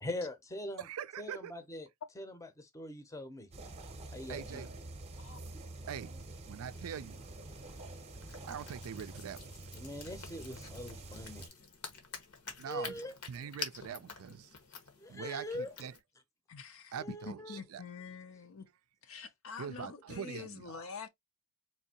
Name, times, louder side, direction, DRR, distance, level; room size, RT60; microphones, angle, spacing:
voice 1, 0.0-0.8 1.2-1.9 2.2-3.5 4.1-4.7 9.7-11.5 12.7-13.1 15.0-15.7 17.0-17.6, left 1 dB, 15° left, 0.6 m, -42 dB
voice 2, 0.8-1.5 4.3-4.8 5.9-7.2 8.5-9.4 12.6-13.0 13.3-14.5 15.1-15.9 16.9-17.8 19.6-20.8, right 8 dB, 70° right, 0.4 m, -43 dB
sound 1, 3.5-11.5, right 2 dB, 30° right, 0.7 m, -47 dB
voice 3, 5.2-5.5 11.4-11.5 16.5-17.0 17.3-18.7 19.0-21.1, left 5 dB, 65° left, 0.6 m, -46 dB
sound 2, 6.7-16.0, left 5 dB, 80° left, 1.2 m, -49 dB
4.3 x 2.7 x 2.8 m
head